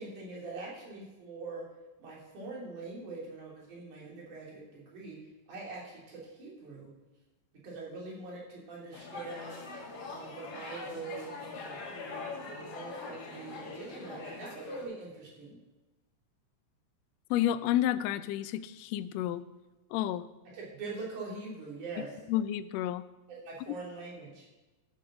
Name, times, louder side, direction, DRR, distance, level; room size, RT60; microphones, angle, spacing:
voice 1, 0.0-1.7 2.0-5.2 5.5-6.9 7.6-9.6 10.1-15.6 20.5-22.2 23.3-24.5, right 3 dB, 90° right, -4 dB, 4.4 m, -43 dB
sound 1, 8.9-14.8, left 3 dB, 60° left, 3.6 m, -43 dB
voice 2, 17.3-19.4 19.9-20.3 22.3-23.0 23.7-23.8, left 12 dB, 80° left, 13 dB, 1.6 m, -30 dB
12.5 x 7.1 x 6.1 m, 1.1 s
omnidirectional pair, 3.4 m